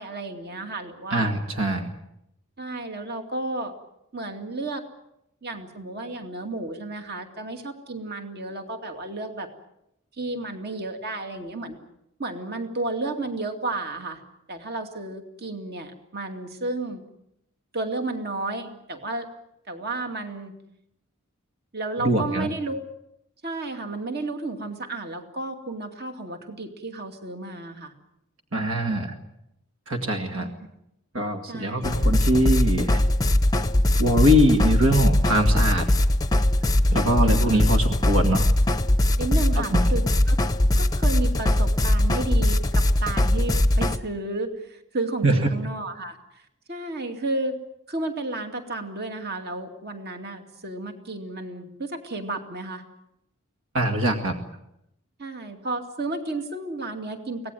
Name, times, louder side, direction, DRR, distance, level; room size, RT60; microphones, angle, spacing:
voice 1, 0.0-1.3 2.6-3.7 4.1-4.8 5.4-9.5 10.2-11.8 12.2-14.2 14.5-17.0 17.7-19.3 19.7-20.5 21.7-22.8 23.4-27.9 30.3-30.5 31.5-32.1 37.0-37.6 39.2-40.4 40.8-46.2 46.7-47.6 47.9-52.8 55.2-57.5, right 2 dB, 45° right, 5 dB, 2.5 m, -32 dB
voice 2, 1.1-1.9 22.0-22.5 28.5-29.2 29.9-30.5 31.1-33.0 34.0-35.9 36.9-38.5 39.6-39.8 45.2-45.5 53.7-54.4, equal, 65° right, 5 dB, 2.2 m, -22 dB
sound 1, 31.8-44.0, left 1 dB, 15° left, 0.8 m, -21 dB
25.0 x 18.0 x 9.3 m, 0.81 s
head